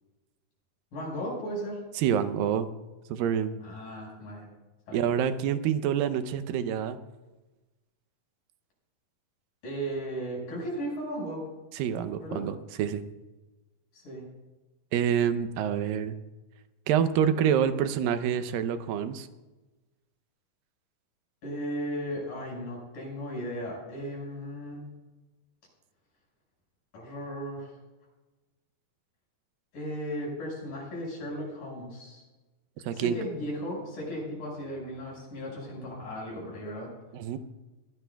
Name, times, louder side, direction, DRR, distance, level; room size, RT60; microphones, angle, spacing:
voice 1, 0.9-1.8 3.6-4.5 4.9-5.0 9.6-11.4 12.2-12.4 13.9-14.3 21.4-24.8 26.9-27.7 29.7-32.2 32.9-36.9, equal, 75° left, -2 dB, 7.2 m, -36 dB
voice 2, 2.0-2.7 3.1-3.5 4.9-7.0 11.7-13.0 14.9-16.2 16.9-19.3 32.9-33.2 37.1-37.4, right 9 dB, 90° right, 11 dB, 2.5 m, -27 dB
21.5 x 16.0 x 2.3 m, 1.1 s
omnidirectional pair, 3.9 m